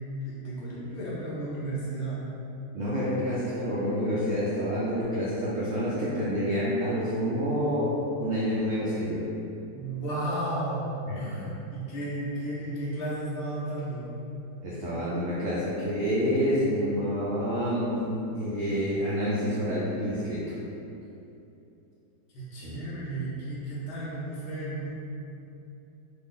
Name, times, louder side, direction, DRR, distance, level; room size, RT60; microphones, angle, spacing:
voice 1, 0.2-2.2 9.7-14.1 22.3-24.9, right 1 dB, 80° left, -8 dB, 0.5 m, -33 dB
voice 2, 2.7-7.9 8.2-9.2 11.1-11.2 14.6-18.1 18.4-20.5 22.6-22.8, equal, 75° right, -7 dB, 0.7 m, -28 dB
2.7 x 2.5 x 3.6 m, 2.8 s
omnidirectional pair, 1.8 m